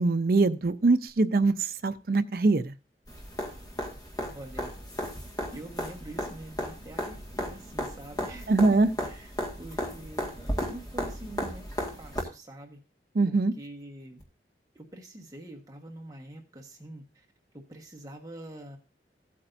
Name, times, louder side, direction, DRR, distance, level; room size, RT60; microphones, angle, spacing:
voice 1, 0.0-2.7 8.5-8.9 13.1-13.5, right 3 dB, 55° right, 11 dB, 0.6 m, -23 dB
sound 1, 3.1-12.2 14.2-14.3, equal, 20° left, 1.8 m, -35 dB
voice 2, 4.3-4.7 5.5-9.3 9.6-12.8 13.2-14.2 14.7-17.2 17.7-18.8, right 1 dB, 20° right, 1 dB, 1.3 m, -45 dB
16.0 x 8.5 x 2.6 m, 0.30 s
head